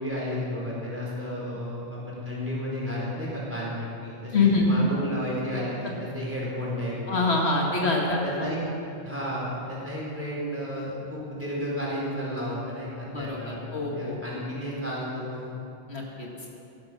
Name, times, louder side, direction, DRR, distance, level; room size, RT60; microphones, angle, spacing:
voice 1, 0.0-7.0 8.2-8.6 9.0-15.4, equal, 10° right, -6 dB, 4.3 m, -32 dB
voice 2, 4.3-4.7 7.1-8.5 13.1-14.2 15.9-16.3, left 3 dB, 65° left, -1 dB, 1.9 m, -25 dB
16.5 x 11.5 x 5.7 m, 2.7 s
omnidirectional pair, 1.2 m